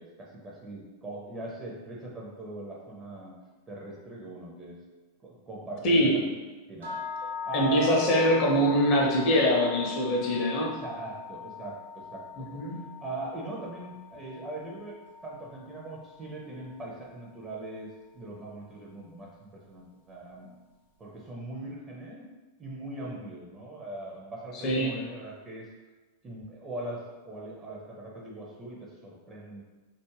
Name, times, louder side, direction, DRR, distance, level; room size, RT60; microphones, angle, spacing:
voice 1, 0.0-3.3 3.7-4.8 5.2-6.2 6.7-8.4 10.7-12.6 13.0-20.6 21.0-22.2 22.6-25.7 26.2-29.6, right 2 dB, 20° right, -3 dB, 0.5 m, -40 dB
voice 2, 5.8-6.2 7.5-10.7 12.5-12.9 24.6-24.9, equal, 40° left, -1 dB, 0.6 m, -23 dB
sound 1, 6.8-16.9, left 6 dB, 70° right, 0.6 m, -41 dB
2.3 x 2.0 x 3.1 m, 1.3 s
figure-of-eight pair, 90°, 0 cm